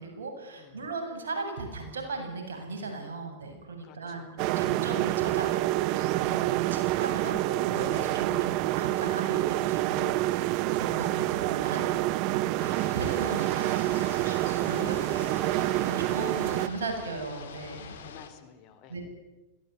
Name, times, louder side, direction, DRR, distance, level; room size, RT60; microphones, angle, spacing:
voice 1, 0.0-10.5 10.7-17.9 18.9-19.0, right 3 dB, 85° right, 4 dB, 7.7 m, -37 dB
voice 2, 0.5-1.0 3.8-4.3 6.5-6.8 10.8-11.1 15.9-16.3 18.0-19.0, left 8 dB, 50° left, 10 dB, 4.2 m, -53 dB
sound 1, 4.4-16.7, right 17 dB, 50° right, 0.9 m, -27 dB
sound 2, 12.6-18.3, left 6 dB, 75° left, 3.2 m, -44 dB
21.5 x 17.5 x 9.8 m, 1.1 s
hypercardioid pair, 105°, 0 cm